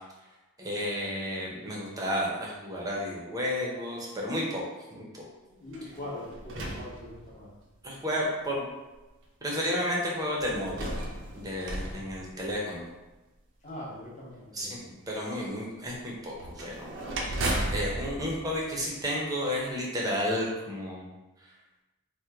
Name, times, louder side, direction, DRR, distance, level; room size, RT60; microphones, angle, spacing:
voice 1, 0.6-4.6 4.9-5.2 7.8-8.6 9.4-10.9 11.3-12.8 14.5-14.8 15.1-16.9 17.2-17.3 17.7-21.0, equal, 15° right, -4 dB, 0.6 m, -32 dB
voice 2, 5.4-7.5 13.6-14.9, left 1 dB, 30° left, -6 dB, 0.8 m, -42 dB
sound 1, 5.7-7.7 8.4-8.5 10.4-13.0 16.3-19.4, right 1 dB, 55° right, 0.5 m, -35 dB
3.0 x 2.1 x 3.4 m, 1.1 s
head